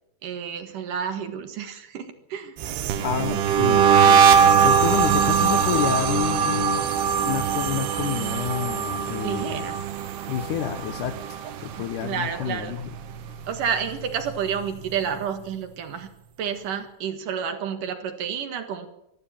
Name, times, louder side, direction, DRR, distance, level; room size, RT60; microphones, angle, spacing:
voice 1, 0.2-2.6 9.2-9.8 11.8-12.8 13.5-16.1 16.4-18.9, right 7 dB, 60° right, 8 dB, 2.9 m, -30 dB
sound 1, 2.6-11.8 12.1-12.5 12.8-14.4, right 7 dB, 85° right, 3.3 m, -21 dB
voice 2, 3.0-4.2 4.6-9.7 10.3-12.8, left 11 dB, 70° left, 10 dB, 2.1 m, -29 dB
24.5 x 13.0 x 8.8 m, 0.83 s
omnidirectional pair, 4.5 m